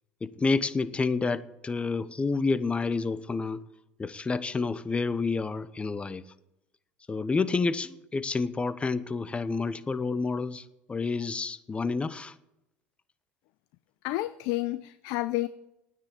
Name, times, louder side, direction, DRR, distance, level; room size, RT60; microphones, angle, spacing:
voice 1, 0.2-3.6 4.0-6.2 7.1-12.3, left 4 dB, 20° left, 0.7 m, -29 dB
voice 2, 14.0-15.5, left 18 dB, 70° left, 0.5 m, -30 dB
9.5 x 9.4 x 8.5 m
supercardioid pair, 90°, 6 cm